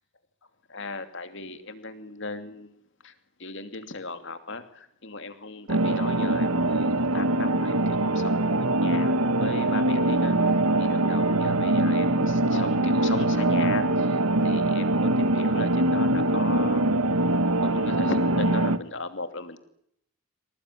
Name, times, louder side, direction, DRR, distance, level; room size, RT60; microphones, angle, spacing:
voice 1, 0.7-2.7 3.0-3.1 3.4-10.5 10.8-16.9 17.5-19.6, left 3 dB, 55° left, 9 dB, 2.8 m, -37 dB
sound 1, 5.7-18.8, right 2 dB, 85° right, 1.4 m, -23 dB
26.5 x 19.0 x 10.0 m, 0.71 s
head